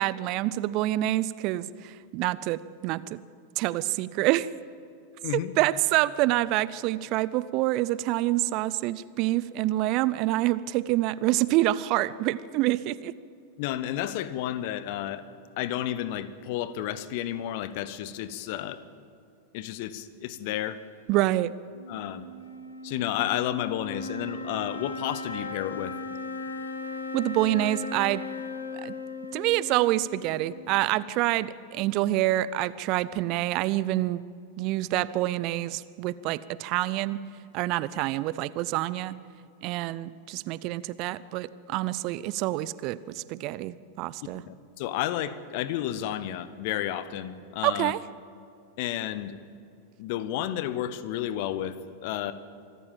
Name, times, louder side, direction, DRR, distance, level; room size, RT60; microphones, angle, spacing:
voice 1, 0.0-3.2 3.6-4.5 5.3-13.1 21.1-21.5 27.1-28.2 28.8-28.9 29.3-34.2 34.6-37.2 37.5-39.1 39.6-44.4 47.6-48.0, right 16 dB, 40° right, 18 dB, 0.5 m, -27 dB
voice 2, 13.6-15.2 15.6-18.8 19.5-20.8 21.9-22.2 22.8-25.9 44.5-47.9 48.8-49.3 50.0-51.7 52.0-52.3, left 12 dB, 50° left, 15 dB, 1.1 m, -31 dB
sound 1, 21.7-31.1, left 3 dB, 80° left, 1.7 m, -38 dB
25.0 x 14.0 x 7.4 m, 2.5 s
figure-of-eight pair, 90°, 0 cm